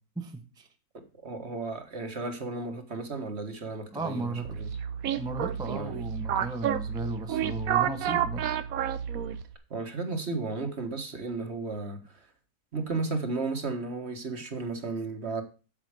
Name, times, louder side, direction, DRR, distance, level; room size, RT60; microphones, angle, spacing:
voice 1, 0.2-0.7 3.9-4.5 5.2-8.5, right 2 dB, 5° right, 0.9 m, -35 dB
voice 2, 1.2-4.7 5.7-5.9 9.7-12.0 12.7-15.4, right 3 dB, 45° right, 1.7 m, -34 dB
sound 1, 4.4-9.5, right 9 dB, 70° right, 1.2 m, -30 dB
8.8 x 7.7 x 4.9 m
omnidirectional pair, 1.6 m